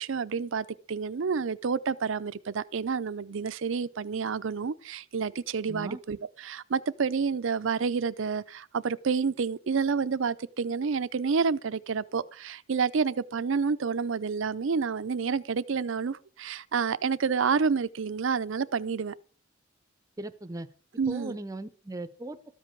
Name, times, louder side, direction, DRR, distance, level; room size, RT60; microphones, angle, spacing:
voice 1, 0.0-19.1 21.0-21.4, right 5 dB, 65° right, 0.5 m, -29 dB
voice 2, 5.7-6.0 20.2-20.7 21.1-22.4, right 1 dB, 15° right, 0.7 m, -38 dB
13.5 x 5.2 x 7.5 m
head